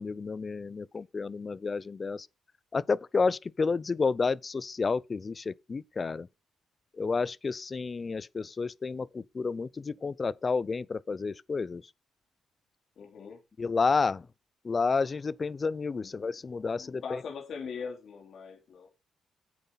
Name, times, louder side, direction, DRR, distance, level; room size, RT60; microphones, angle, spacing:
voice 1, 0.0-2.3 2.7-6.3 7.0-11.8 13.6-14.2 14.6-17.0, left 4 dB, 35° left, 0.5 m, -30 dB
voice 2, 13.0-13.4 16.0-16.2 16.8-18.9, left 5 dB, 60° left, 3.0 m, -41 dB
9.4 x 8.9 x 4.0 m
cardioid pair, 90°, 0 cm